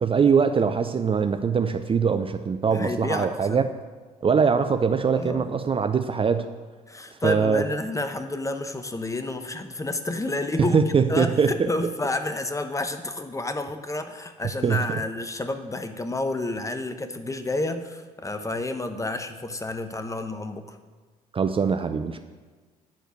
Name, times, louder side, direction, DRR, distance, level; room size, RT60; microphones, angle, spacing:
voice 1, 0.0-3.7 4.2-6.5 7.2-7.6 10.6-11.7 14.6-15.0 21.3-22.2, right 6 dB, 30° right, 9 dB, 0.6 m, -22 dB
voice 2, 2.7-3.7 5.1-5.5 6.9-20.8, left 2 dB, 15° left, 8 dB, 1.0 m, -30 dB
11.5 x 4.6 x 7.7 m, 1.4 s
hypercardioid pair, 55°, 19 cm